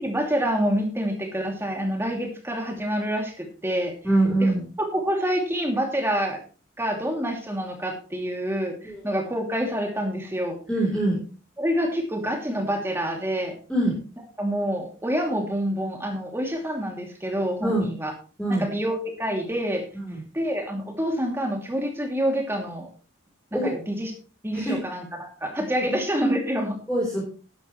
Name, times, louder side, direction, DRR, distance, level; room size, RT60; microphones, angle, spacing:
voice 1, 0.0-3.9 4.4-4.5 4.8-6.4 6.8-10.6 11.6-13.6 14.4-18.1 18.5-19.8 20.3-22.9 23.5-24.1 24.4-26.8, equal, 10° right, 2 dB, 2.6 m, -27 dB
voice 2, 4.0-4.6 8.8-9.0 10.7-11.2 13.7-13.9 17.6-17.9 18.4-18.7 20.1-20.2 23.5-23.7 24.6-24.8 25.8-26.0 26.9-27.2, right 1 dB, 5° left, -5 dB, 3.6 m, -23 dB
12.0 x 11.5 x 3.1 m, 0.37 s
head